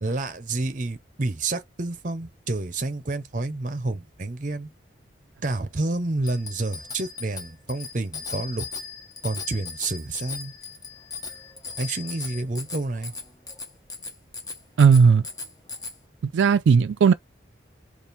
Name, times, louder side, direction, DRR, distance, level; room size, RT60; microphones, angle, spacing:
voice 1, 0.0-4.7 5.4-8.7 9.2-10.5 11.8-13.1, right 2 dB, 45° right, 0.7 m, -29 dB
Bicycle bell, 6.2-15.9, left 5 dB, 20° left, 0.9 m, -38 dB
voice 2, 14.8-15.2 16.3-17.1, right 6 dB, 85° right, 0.3 m, -16 dB
4.2 x 2.5 x 3.2 m
head